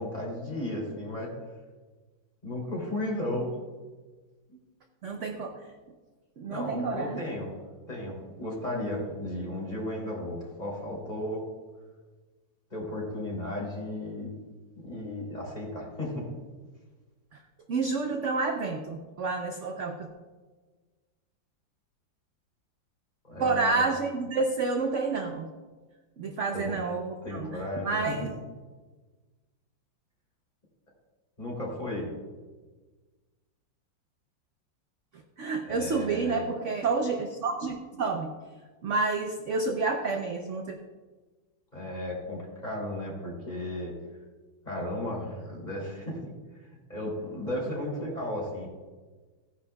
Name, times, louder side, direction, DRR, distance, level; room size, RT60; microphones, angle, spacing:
voice 1, 0.0-1.3 2.4-3.6 6.5-7.5 7.9-11.4 12.7-14.4 14.7-16.2 23.2-23.8 26.5-26.8 27.2-28.2 31.4-32.1 35.6-36.5 41.7-43.9 44.6-46.2 46.9-48.7, left 1 dB, 20° left, -4 dB, 3.2 m, -34 dB
voice 2, 5.0-5.6 6.4-7.2 17.3-17.4 17.7-20.1 23.4-25.5 26.2-27.6 27.8-28.3 35.4-38.3 38.8-40.8, right 4 dB, 60° right, 4 dB, 0.8 m, -29 dB
16.0 x 10.0 x 2.3 m, 1.3 s
omnidirectional pair, 2.1 m